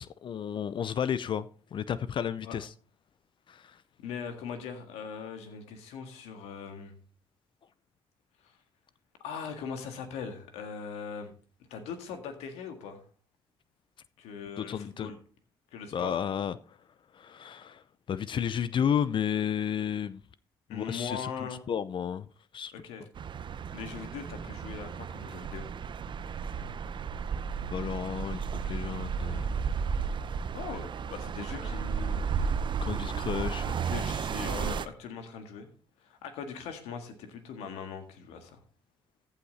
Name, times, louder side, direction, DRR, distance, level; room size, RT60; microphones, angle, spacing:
voice 1, 0.0-2.7 3.5-3.8 14.6-15.1 15.9-16.6 17.1-17.8 18.1-20.2 20.7-22.3 22.5-22.7 27.7-29.5 32.8-33.8, left 8 dB, 50° left, 0.5 m, -32 dB
voice 2, 4.0-7.0 8.4-8.5 9.2-11.3 11.7-13.0 14.2-15.2 15.7-16.2 20.7-21.6 22.7-23.1 23.7-25.7 30.5-32.6 33.2-33.5 33.8-35.7 36.0-38.6, left 6 dB, 80° left, 1.8 m, -40 dB
sound 1, 23.2-34.9, right 6 dB, 50° right, 0.7 m, -33 dB
14.5 x 5.8 x 4.2 m
supercardioid pair, 65°, 10 cm